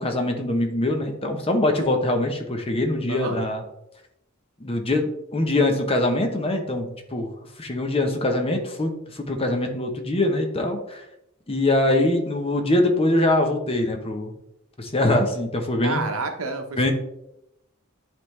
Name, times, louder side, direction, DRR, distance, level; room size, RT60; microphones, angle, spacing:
voice 1, 0.0-3.6 4.6-7.3 7.6-11.0 11.5-14.3 14.8-16.0 16.8-16.9, left 1 dB, 25° left, 5 dB, 0.9 m, -23 dB
voice 2, 15.8-16.9, right 3 dB, 85° right, 5 dB, 1.0 m, -29 dB
10.5 x 3.6 x 3.2 m, 0.83 s
head